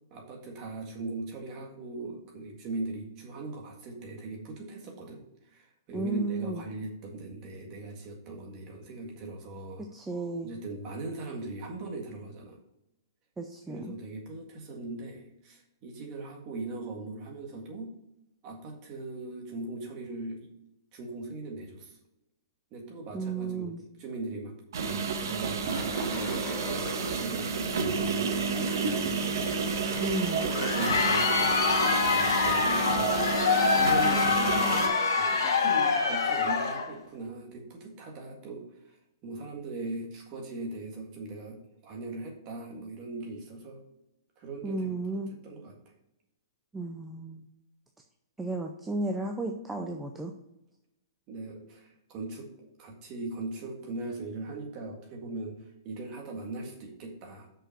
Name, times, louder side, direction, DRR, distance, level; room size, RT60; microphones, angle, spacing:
voice 1, 0.1-5.2 5.5-9.9 10.4-12.6 13.7-17.9 18.4-20.5 20.9-22.0 22.7-23.7 24.0-29.3 30.4-33.1 33.8-39.0 39.2-41.6 41.8-43.8 44.4-45.0 45.4-45.7 51.3-52.5 52.8-57.5, right 2 dB, 25° right, 1 dB, 1.8 m, -39 dB
voice 2, 5.9-6.6 9.9-10.5 13.4-13.9 23.1-23.8 30.0-30.5 44.6-45.3 46.7-47.5 48.4-50.3, right 2 dB, 5° right, 2 dB, 0.5 m, -33 dB
sound 1, 24.7-34.9, right 5 dB, 65° right, 1.4 m, -30 dB
sound 2, 25.6-35.0, left 3 dB, 20° left, 1.4 m, -44 dB
Crowd, 30.4-36.9, left 5 dB, 65° left, 1.9 m, -25 dB
6.2 x 5.5 x 5.8 m, 0.86 s
hypercardioid pair, 165°, 2 cm